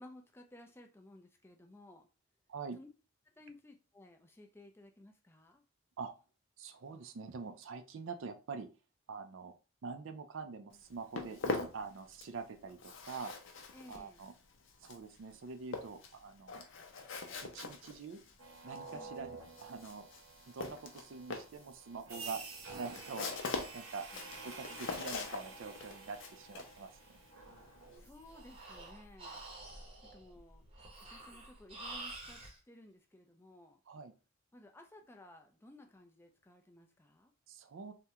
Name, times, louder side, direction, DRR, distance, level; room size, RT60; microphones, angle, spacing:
voice 1, 0.0-2.1 2.8-2.9 3.4-5.6 13.7-14.2 18.9-19.1 24.1-24.3 28.0-29.4 30.1-30.7 31.1-32.4 32.7-33.8 34.5-37.3, left 1 dB, 10° left, 4 dB, 0.4 m, -57 dB
voice 2, 6.6-8.7 9.1-9.5 9.8-13.3 13.9-14.3 14.8-16.7 17.4-18.2 18.6-20.1 20.5-22.4 22.7-23.4 23.7-24.1 24.4-27.2 33.9-34.1 37.5-37.9, right 4 dB, 65° right, 8 dB, 0.4 m, -45 dB
Walk footsteps, 10.7-12.4 12.7-28.1, left 4 dB, 60° left, 0.5 m, -43 dB
sound 1, 18.4-28.5, right 3 dB, 85° right, 0.9 m, -50 dB
Breathing, 28.0-32.6, right 2 dB, 25° right, 0.8 m, -49 dB
3.4 x 2.1 x 2.8 m, 0.33 s
head